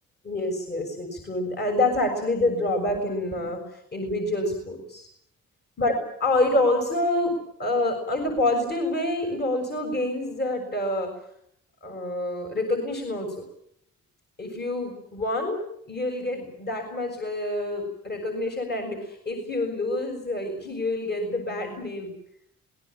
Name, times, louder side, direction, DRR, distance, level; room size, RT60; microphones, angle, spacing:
voice 1, 0.2-3.6 3.9-5.1 5.8-11.1 11.8-13.4 14.4-22.1, left 2 dB, 35° left, 4 dB, 6.8 m, -27 dB
26.5 x 21.0 x 7.5 m, 0.69 s
cardioid pair, 90°, 30 cm